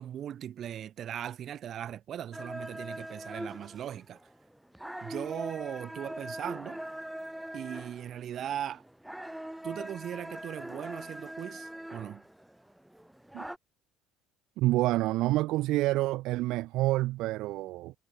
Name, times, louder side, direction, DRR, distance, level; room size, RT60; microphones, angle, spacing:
voice 1, 0.0-4.2 5.0-6.8 7.5-8.8 9.6-12.2, right 10 dB, 45° right, 4.1 m, -38 dB
sound 1, 2.3-13.6, right 1 dB, 5° right, 2.3 m, -42 dB
voice 2, 14.6-17.9, right 18 dB, 65° right, 0.5 m, -28 dB
cardioid pair, 130°, 0 cm